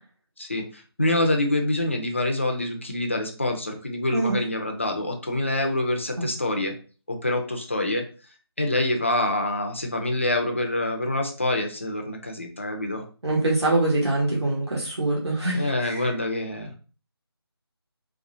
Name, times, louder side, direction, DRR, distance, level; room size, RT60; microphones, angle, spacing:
voice 1, 0.4-6.7 7.1-8.1 8.6-13.0 15.5-16.7, left 1 dB, 30° left, 3 dB, 0.4 m, -26 dB
voice 2, 13.2-16.0, right 2 dB, 80° right, -3 dB, 1.4 m, -24 dB
3.1 x 3.0 x 2.6 m, 0.37 s
figure-of-eight pair, 175°, 14 cm